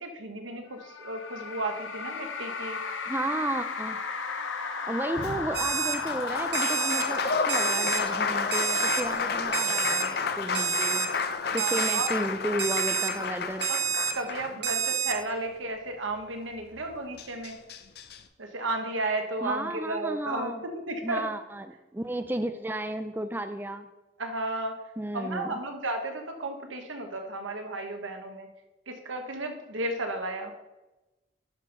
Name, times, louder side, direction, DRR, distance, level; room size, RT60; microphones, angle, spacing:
voice 1, 0.0-2.8 11.3-12.1 13.7-13.8 14.1-17.6 18.4-20.5 20.9-21.2 24.2-24.7 25.1-28.5 28.9-30.5, right 2 dB, 90° right, 5 dB, 1.2 m, -33 dB
sound 1, 0.8-10.5, left 4 dB, 85° left, 1.0 m, -35 dB
voice 2, 3.1-4.0 4.8-11.1 11.5-13.7 19.4-20.6 21.0-23.9 25.0-25.6, right 1 dB, 10° right, 8 dB, 0.4 m, -33 dB
Applause, 5.1-15.4 16.8-16.9 17.2-18.2, left 5 dB, 55° left, 0.6 m, -31 dB
Alarm, 5.5-6.0 6.5-7.0 7.5-8.0 8.5-9.0 9.5-10.0 10.5-11.1 11.6-12.1 12.6-13.1 13.6-14.1 14.6-15.1, right 8 dB, 60° right, 1.1 m, -28 dB
11.0 x 4.4 x 5.2 m, 1.1 s
head